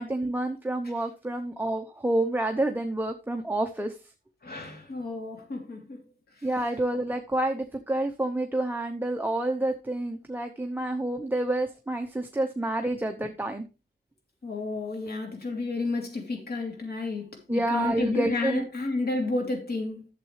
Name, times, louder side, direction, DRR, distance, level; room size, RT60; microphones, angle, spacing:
voice 1, 0.0-4.0 6.4-13.6 17.5-18.7, right 1 dB, 10° right, 0.8 m, -28 dB
voice 2, 4.4-6.0 14.4-20.1, left 3 dB, 60° left, 2.9 m, -31 dB
11.5 x 7.4 x 3.2 m
wide cardioid pair, 130°, 19 cm